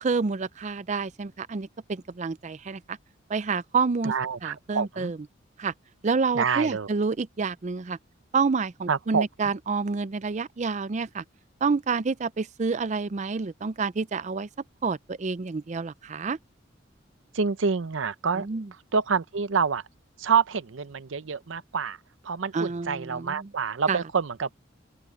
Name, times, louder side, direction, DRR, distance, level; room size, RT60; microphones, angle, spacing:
voice 1, 0.0-3.0 3.3-4.1 4.4-5.2 5.6-5.7 6.0-8.0 8.3-11.2 11.6-14.5 14.8-16.4 18.4-18.7 22.5-23.5 23.9-24.0, right 4 dB, 40° right, 0.5 m, -28 dB
voice 2, 4.0-5.1 6.3-6.9 8.9-9.2 17.3-18.5 18.9-19.8 20.2-22.0 22.2-24.5, right 5 dB, 90° right, 0.7 m, -27 dB
open air
head